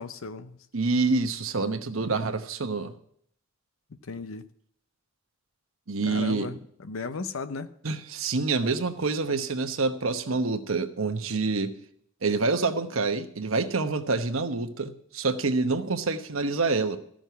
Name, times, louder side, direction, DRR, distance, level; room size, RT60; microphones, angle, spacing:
voice 1, 0.0-0.6 4.0-4.5 6.0-7.7, left 4 dB, 75° left, 0.6 m, -35 dB
voice 2, 0.7-2.9 5.9-6.5 7.8-11.7 12.2-17.0, right 3 dB, 75° right, 1.0 m, -27 dB
14.0 x 6.3 x 8.2 m
head